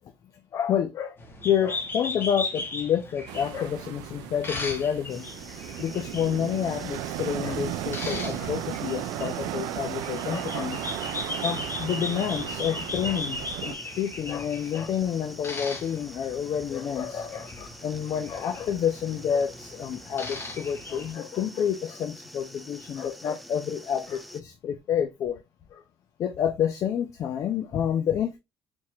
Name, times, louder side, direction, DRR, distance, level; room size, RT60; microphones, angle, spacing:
voice 1, 0.5-1.2 1.4-5.3 5.8-10.8 11.4-25.4 25.7-25.8 26.2-28.4, left 9 dB, 60° left, 0.4 m, -29 dB
sound 1, 1.2-21.1, left 2 dB, 35° left, 1.0 m, -38 dB
sound 2, 3.3-13.7, right 13 dB, 80° right, 0.3 m, -35 dB
sound 3, 5.1-24.4, equal, ahead, 0.5 m, -47 dB
4.4 x 2.9 x 2.3 m
supercardioid pair, 70°, 7 cm